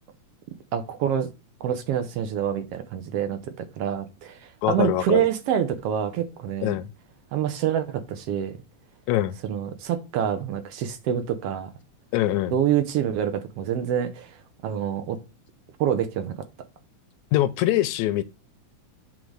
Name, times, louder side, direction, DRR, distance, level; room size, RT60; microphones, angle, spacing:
voice 1, 0.7-1.3 1.6-6.7 7.3-8.5 9.4-11.7 12.5-14.3 14.6-15.2 15.8-16.4, right 9 dB, 70° right, 1.5 m, -26 dB
voice 2, 4.6-5.2 6.6-6.9 9.1-9.4 12.1-12.6 17.3-18.2, left 14 dB, 80° left, 1.8 m, -23 dB
7.9 x 3.8 x 4.7 m
omnidirectional pair, 3.5 m